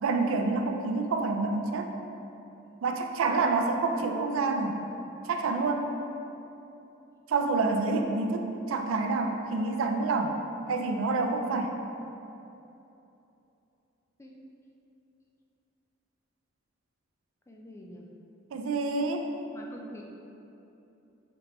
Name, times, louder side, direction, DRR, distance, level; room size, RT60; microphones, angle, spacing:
voice 1, 0.0-1.9 2.8-4.8 5.3-5.9 7.3-10.4 10.7-11.7 18.5-19.3, right 3 dB, 85° right, 4 dB, 0.4 m, -28 dB
voice 2, 17.5-18.1 19.5-20.0, left 1 dB, 15° left, -2 dB, 0.3 m, -47 dB
5.0 x 3.0 x 3.0 m, 2.9 s
head